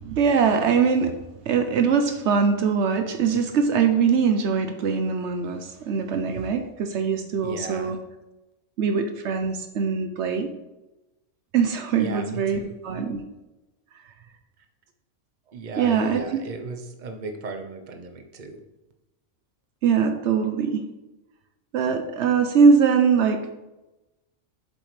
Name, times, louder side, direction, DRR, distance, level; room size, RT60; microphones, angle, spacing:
voice 1, 0.0-1.1 1.5-8.0 8.8-10.5 11.5-13.2 15.8-16.4 19.8-20.8 21.7-23.5, right 6 dB, 75° right, 6 dB, 0.9 m, -22 dB
voice 2, 7.4-7.9 12.0-12.7 15.5-18.6, right 3 dB, 45° right, 5 dB, 0.9 m, -36 dB
7.8 x 7.5 x 3.2 m, 1.0 s
omnidirectional pair, 1.2 m